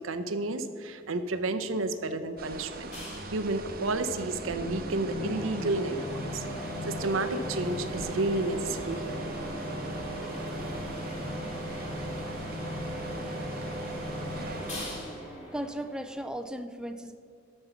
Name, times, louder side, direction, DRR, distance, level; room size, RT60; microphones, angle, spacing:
voice 1, 0.0-2.9 3.3-6.4 6.8-9.2, right 2 dB, 85° right, 9 dB, 0.7 m, -31 dB
sound 1, 2.4-15.0, right 3 dB, 50° right, 0.8 m, -43 dB
sound 2, 2.9-16.4, equal, 35° left, 2.0 m, -37 dB
voice 2, 15.5-17.2, right 1 dB, 5° right, 7 dB, 0.4 m, -36 dB
13.0 x 5.4 x 5.9 m, 2.2 s
head